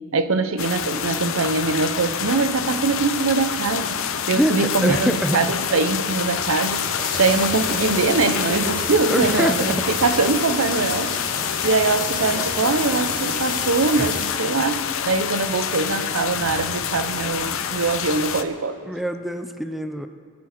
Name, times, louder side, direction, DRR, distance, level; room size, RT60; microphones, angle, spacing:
voice 1, 0.1-4.0 4.3-6.8 7.2-11.2 11.6-18.8, right 4 dB, 70° right, 11 dB, 0.7 m, -22 dB
sound 1, 0.6-18.4, left 7 dB, 70° left, 0.7 m, -27 dB
voice 2, 4.3-5.4 9.1-9.8 14.0-14.1 18.9-20.1, equal, ahead, 7 dB, 0.3 m, -24 dB
sound 2, 5.9-14.3, left 5 dB, 40° left, 2.0 m, -31 dB
21.5 x 8.6 x 4.3 m, 2.2 s
head